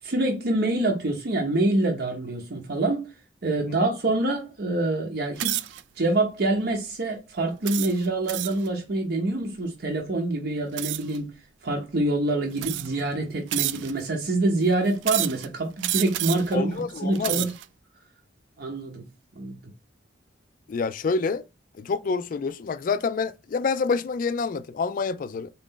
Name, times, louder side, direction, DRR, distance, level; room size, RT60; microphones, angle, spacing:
voice 1, 0.0-3.1 3.4-5.6 6.0-11.3 11.6-17.5 18.6-19.0 19.4-19.6, right 2 dB, 60° right, 0.7 m, -26 dB
sound 1, 5.4-5.8 6.5-6.7 7.7-8.7 10.8-11.2 12.0-12.1 12.6-13.0 13.5-14.1 15.0-15.5 15.8-16.5 17.0-17.7, right 14 dB, 75° right, 0.3 m, -29 dB
voice 2, 16.5-17.5 20.7-21.4 21.8-25.5, left 4 dB, 45° left, 0.3 m, -27 dB
4.0 x 2.4 x 3.6 m
head